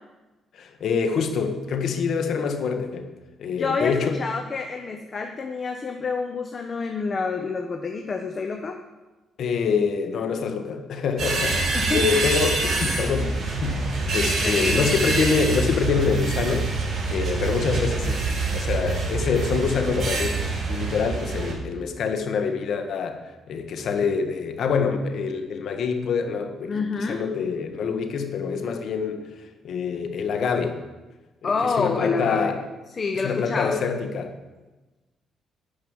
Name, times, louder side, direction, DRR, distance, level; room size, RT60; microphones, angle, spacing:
voice 1, 0.5-3.1 3.4-4.2 9.4-13.4 13.6-18.2 18.5-20.4 20.7-23.2 23.5-29.3 29.6-30.8 31.4-32.6 33.2-34.3, left 5 dB, 65° left, 6 dB, 1.6 m, -25 dB
voice 2, 3.6-8.8 11.7-12.2 14.4-14.8 26.7-27.2 31.4-32.5 32.9-33.8, left 4 dB, 40° left, 4 dB, 1.0 m, -28 dB
sound 1, 11.2-21.5, right 3 dB, 55° right, 4.3 m, -25 dB
12.0 x 5.5 x 9.1 m, 1.2 s
cardioid pair, 90°, 0 cm